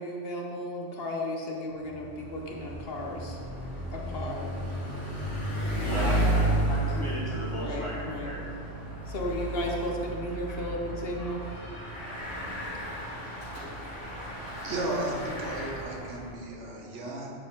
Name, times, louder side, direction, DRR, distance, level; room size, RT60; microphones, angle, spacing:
voice 1, 0.0-3.4 3.9-4.8 7.5-8.3 9.1-11.4, left 1 dB, 60° left, 0 dB, 1.0 m, -34 dB
Bicycle, 1.7-16.4, right 1 dB, 85° left, 2.4 m, -33 dB
voice 2, 5.8-8.4, equal, 25° left, -6 dB, 1.7 m, -35 dB
voice 3, 14.6-17.3, right 2 dB, 85° right, -1 dB, 1.4 m, -34 dB
9.6 x 4.5 x 3.8 m, 2.4 s
omnidirectional pair, 1.2 m